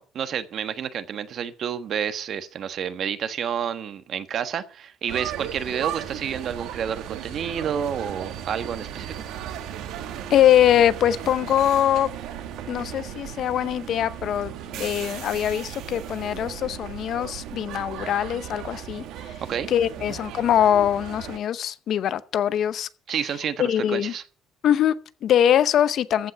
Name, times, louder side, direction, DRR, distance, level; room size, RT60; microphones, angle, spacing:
voice 1, 0.0-9.1 19.5-19.7 20.1-20.2 23.1-24.2, right 8 dB, 55° right, 1.3 m, -29 dB
sound 1, 5.1-21.4, right 10 dB, 80° right, 1.7 m, -36 dB
voice 2, 10.3-12.1 12.7-19.3 19.7-22.9 23.6-24.1 24.6-26.3, left 10 dB, 60° left, 0.7 m, -22 dB
14.5 x 5.4 x 8.5 m
cardioid pair, 120°, 0 cm